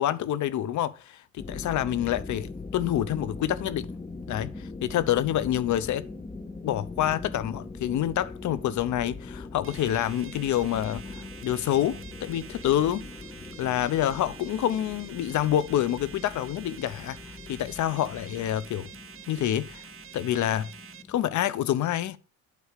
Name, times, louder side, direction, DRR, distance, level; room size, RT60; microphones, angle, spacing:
voice 1, 0.0-3.9 4.3-6.0 6.6-13.1 13.6-18.9 19.3-19.8 20.1-20.7 21.1-22.2, left 11 dB, 70° left, 0.8 m, -27 dB
sound 1, 1.4-21.2, left 3 dB, 15° left, 0.9 m, -41 dB
sound 2, 9.6-21.0, right 8 dB, 45° right, 0.9 m, -47 dB
8.4 x 4.7 x 6.5 m
cardioid pair, 90°, 30 cm